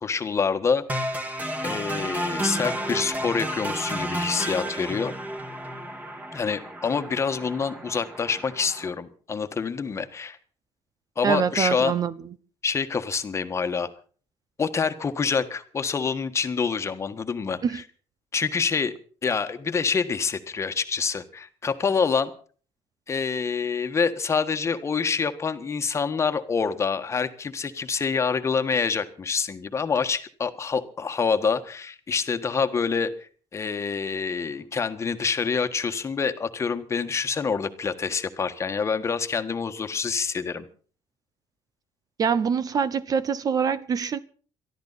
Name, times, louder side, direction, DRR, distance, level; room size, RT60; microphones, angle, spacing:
voice 1, 0.0-0.8 1.6-5.1 6.3-10.4 11.2-11.9 12.6-13.9 14.6-17.8 18.3-18.9 19.2-22.3 23.1-40.7, left 5 dB, 30° left, 1.5 m, -26 dB
sound 1, 0.9-8.9, right 1 dB, 15° right, 2.2 m, -32 dB
voice 2, 11.2-12.1 17.6-17.8 42.2-44.2, right 6 dB, 40° right, 0.8 m, -24 dB
23.0 x 13.5 x 4.2 m
cardioid pair, 120°, 10 cm